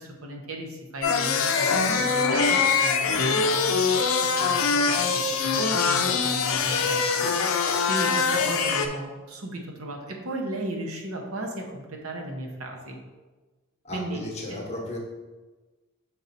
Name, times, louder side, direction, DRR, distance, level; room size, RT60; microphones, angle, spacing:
voice 1, 0.2-0.7 0.9-1.5 1.8-2.4 2.8-2.9 3.5-3.8 4.4-4.9 5.5-5.6 5.9-7.3 7.9-10.0 10.2-11.5 12.0-12.9 13.9-14.3, right 1 dB, 65° right, 1 dB, 1.0 m, -34 dB
sound 1, 1.0-8.9, left 5 dB, 65° left, 0.5 m, -23 dB
voice 2, 13.8-15.0, left 1 dB, 30° left, 0 dB, 1.0 m, -35 dB
5.9 x 4.2 x 4.0 m, 1.3 s
head